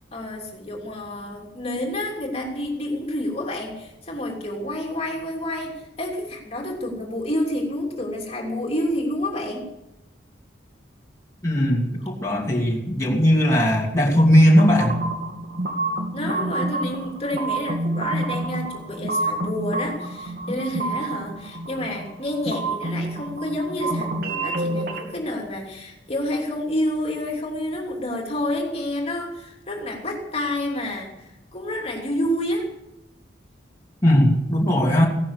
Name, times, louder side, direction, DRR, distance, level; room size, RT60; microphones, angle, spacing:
voice 1, 0.1-9.7 16.1-32.7, left 1 dB, 35° left, 0 dB, 3.0 m, -29 dB
voice 2, 11.4-15.0 34.0-35.1, equal, 15° left, -4 dB, 2.9 m, -18 dB
sound 1, 14.5-25.0, right 2 dB, 55° right, 2.5 m, -28 dB
16.5 x 12.5 x 6.6 m, 0.94 s
head